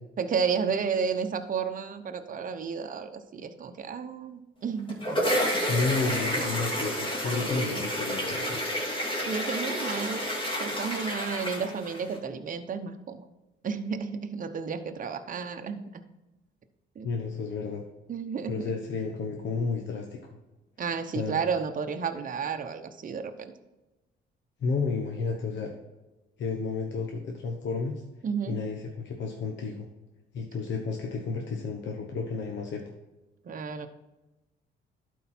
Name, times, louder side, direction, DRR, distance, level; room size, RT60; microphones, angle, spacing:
voice 1, 0.2-5.0 7.4-7.9 9.2-10.3 10.6-13.2 13.6-15.8 17.0-17.1 18.1-18.7 20.8-23.5 28.2-28.6 33.4-33.9, right 6 dB, 45° right, 6 dB, 0.8 m, -32 dB
sound 1, 4.7-12.2, equal, 25° left, 2.7 m, -30 dB
voice 2, 5.7-8.6 17.0-17.8 18.5-20.4 21.1-21.4 24.6-25.7 26.4-28.0 28.5-29.9 30.3-32.8, left 4 dB, 65° left, 1 dB, 1.1 m, -31 dB
11.5 x 4.6 x 4.3 m, 1.1 s
cardioid pair, 90°, 20 cm